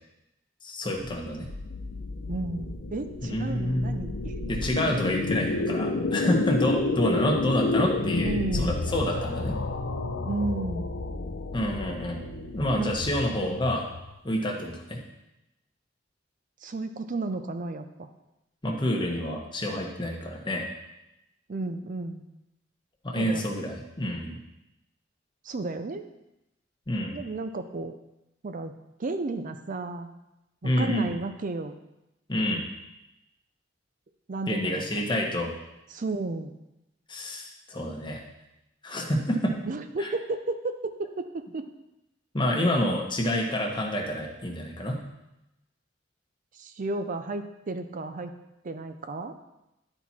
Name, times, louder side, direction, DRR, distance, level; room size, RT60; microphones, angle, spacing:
voice 1, 0.6-1.5 3.2-4.0 4.5-9.5 11.5-12.2 12.5-13.9 14.2-15.0 18.6-20.6 23.0-24.4 26.9-27.2 30.6-31.1 32.3-32.6 34.5-35.5 37.1-38.2 38.8-39.6 40.0-40.1 42.3-45.0, left 1 dB, 25° left, 0 dB, 1.2 m, -28 dB
sound 1, 1.0-14.2, left 3 dB, 70° left, 0.6 m, -30 dB
voice 2, 2.3-4.3 6.2-6.3 8.2-8.9 10.3-11.0 12.8-13.0 16.6-18.1 21.5-22.3 23.1-23.5 25.4-26.1 27.1-27.9 28.4-28.7 29.0-30.2 30.6-31.7 34.3-35.0 35.9-36.5 39.7-41.7 46.5-48.3 48.6-49.4, right 3 dB, 45° right, 8 dB, 0.5 m, -33 dB
11.0 x 4.4 x 4.2 m, 0.93 s
head